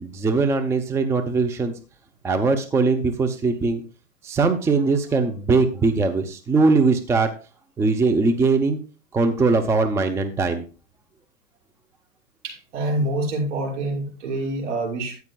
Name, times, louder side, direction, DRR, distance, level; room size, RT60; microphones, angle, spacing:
voice 1, 0.0-1.7 2.2-3.8 4.2-7.3 7.8-8.8 9.1-10.6, right 3 dB, 5° right, 8 dB, 0.6 m, -21 dB
voice 2, 12.4-15.2, right 1 dB, 60° right, -1 dB, 6.2 m, -26 dB
14.0 x 9.4 x 2.3 m, 0.35 s
hypercardioid pair, 125°, 40 cm